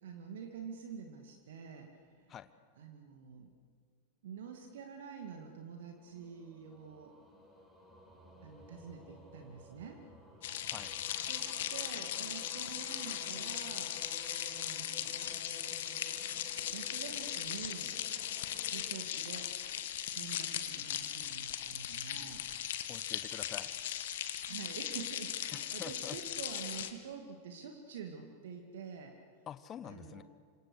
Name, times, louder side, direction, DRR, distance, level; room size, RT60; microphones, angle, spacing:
voice 1, 0.0-1.9 2.2-2.3 2.8-3.5 4.2-7.1 8.4-10.0 11.2-14.0 14.5-15.4 16.7-18.0 18.7-19.5 20.1-22.4 24.4-29.2 29.8-30.2, right 6 dB, 60° right, 3 dB, 2.2 m, -47 dB
sound 1, 5.8-20.3, left 1 dB, 5° left, 6.9 m, -55 dB
sound 2, 10.4-26.9, left 11 dB, 55° left, 1.6 m, -38 dB
voice 2, 22.9-23.8 25.5-26.2 29.5-30.2, left 9 dB, 25° left, 13 dB, 1.2 m, -46 dB
28.0 x 26.0 x 6.6 m, 2.1 s
figure-of-eight pair, 90°, 0 cm